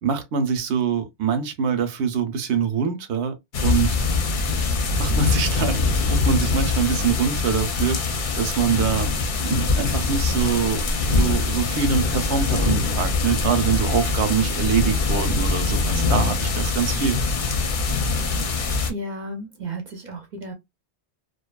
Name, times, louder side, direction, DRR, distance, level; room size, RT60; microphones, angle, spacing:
voice 1, 0.0-3.4 3.6-4.1 5.0-8.0 8.3-9.1 9.4-17.2, right 7 dB, 80° right, 0.9 m, -24 dB
sound 1, 3.5-18.9, left 4 dB, 55° left, 0.6 m, -23 dB
voice 2, 18.9-20.5, right 1 dB, 50° right, 0.6 m, -33 dB
2.6 x 2.3 x 2.2 m
omnidirectional pair, 1.1 m